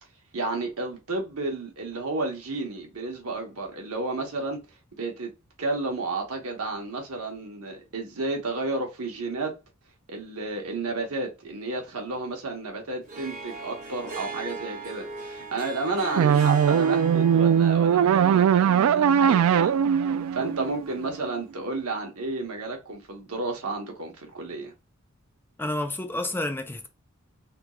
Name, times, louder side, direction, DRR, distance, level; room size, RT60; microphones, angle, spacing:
voice 1, 0.3-4.6 5.0-5.3 5.6-9.5 10.1-19.8 20.3-24.7, right 3 dB, 90° right, 1.1 m, -32 dB
Harp, 13.0-21.3, right 3 dB, 40° right, 1.4 m, -40 dB
sound 1, 16.2-21.3, right 8 dB, 70° right, 0.3 m, -20 dB
voice 2, 25.6-26.9, left 1 dB, 10° left, 0.4 m, -30 dB
3.6 x 2.3 x 3.0 m
head